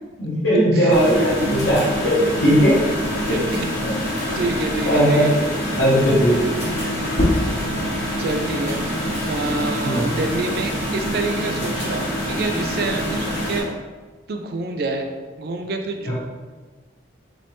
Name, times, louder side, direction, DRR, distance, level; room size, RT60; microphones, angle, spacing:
voice 1, 0.2-2.7 3.8-3.9 4.9-5.4 5.8-6.4 9.8-10.1 16.1-16.2, equal, 85° left, -9 dB, 0.8 m, -18 dB
voice 2, 0.7-1.3 3.3-3.7 4.3-5.4 8.2-8.8 9.3-13.7 14.3-15.1 15.4-16.1, right 2 dB, 55° right, 5 dB, 0.4 m, -27 dB
sound 1, 0.9-13.6, equal, 60° left, 1.0 m, -26 dB
sound 2, 7.1-12.3 12.7-14.5, left 1 dB, 35° left, 0.5 m, -30 dB
3.6 x 3.1 x 3.0 m, 1.3 s
head